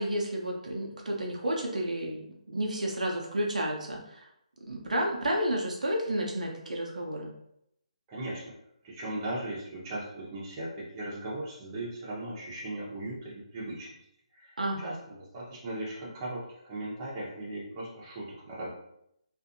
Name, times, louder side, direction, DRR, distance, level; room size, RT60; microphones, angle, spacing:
voice 1, 0.0-4.2 4.7-7.3 14.6-14.9, right 1 dB, 80° right, 0 dB, 0.6 m, -31 dB
voice 2, 8.1-8.5 8.8-13.9 14.3-18.7, right 1 dB, 25° right, -6 dB, 0.9 m, -38 dB
2.6 x 2.5 x 2.6 m, 0.76 s
figure-of-eight pair, 155°, 4 cm